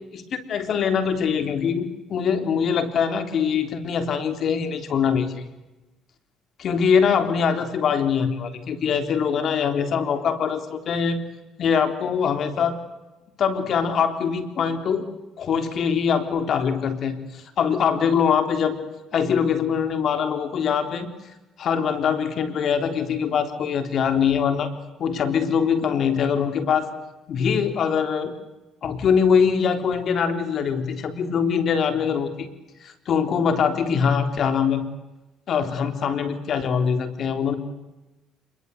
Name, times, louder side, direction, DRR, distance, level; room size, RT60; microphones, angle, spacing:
voice 1, 0.1-5.4 6.6-11.2 11.6-12.8 13.4-15.1 15.4-18.8 19.1-21.1 21.6-24.7 25.0-26.9 27.3-28.3 28.8-32.5 32.8-34.8 35.5-37.5, left 6 dB, 60° left, 8 dB, 3.7 m, -23 dB
27.0 x 22.5 x 8.1 m, 1.0 s
supercardioid pair, 80°, 0 cm